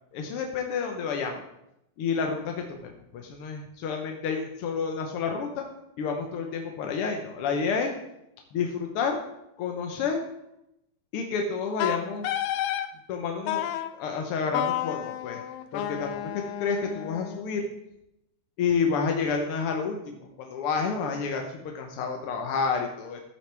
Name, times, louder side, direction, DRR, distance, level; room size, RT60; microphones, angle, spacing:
voice 1, 0.1-1.4 2.0-5.7 6.0-7.9 8.5-9.2 9.6-10.2 11.1-12.3 13.1-13.6 14.0-15.4 15.7-17.6 18.6-23.2, left 5 dB, 70° left, 3 dB, 1.4 m, -29 dB
Wind instrument woodwind instrument, 11.8-12.9 13.5-13.9 14.5-17.5, left 12 dB, 85° left, 2.0 m, -31 dB
13.5 x 8.2 x 3.4 m, 0.83 s
omnidirectional pair, 3.5 m